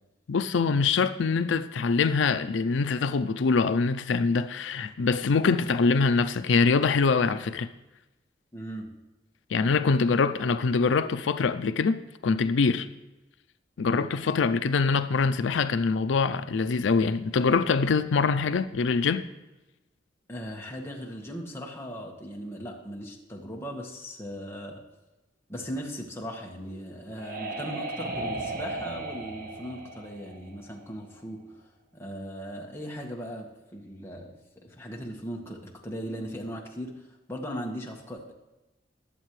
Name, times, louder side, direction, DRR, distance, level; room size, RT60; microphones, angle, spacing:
voice 1, 0.3-7.7 9.5-12.9 13.8-19.3, left 4 dB, 90° left, 0.5 m, -24 dB
voice 2, 8.5-8.9 13.8-14.1 20.3-24.8 25.5-31.4 31.9-34.4 34.6-38.3, equal, 15° left, 1.5 m, -38 dB
sound 1, 26.6-31.2, right 2 dB, 50° right, 1.5 m, -36 dB
21.0 x 7.4 x 3.2 m
head